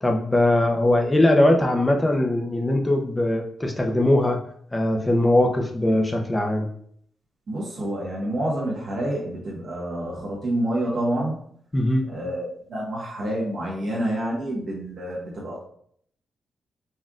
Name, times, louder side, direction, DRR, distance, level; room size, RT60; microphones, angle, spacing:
voice 1, 0.0-4.4 4.7-6.7 11.7-12.1, left 1 dB, 25° left, 3 dB, 0.8 m, -20 dB
voice 2, 7.5-11.4 12.1-15.7, right 1 dB, 60° right, -5 dB, 1.2 m, -28 dB
4.3 x 3.4 x 2.4 m, 0.64 s
supercardioid pair, 45°, 0 cm